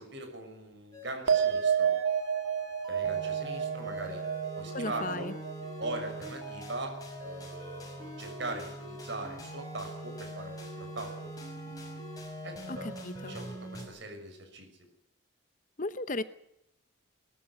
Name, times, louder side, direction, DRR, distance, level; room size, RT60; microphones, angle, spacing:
voice 1, 0.0-1.9 2.9-4.2 4.6-5.3 5.8-11.1 12.4-14.7, right 2 dB, 60° right, 5 dB, 6.6 m, -41 dB
sound 1, 0.9-13.8, equal, 20° left, 5.8 m, -43 dB
sound 2, 1.3-8.0 8.2-8.9, right 8 dB, 75° right, 2.2 m, -32 dB
voice 2, 4.7-5.3 12.7-12.8 13.0-13.3 15.8-16.2, left 2 dB, 40° left, 13 dB, 0.9 m, -35 dB
21.0 x 14.0 x 9.8 m, 0.79 s
head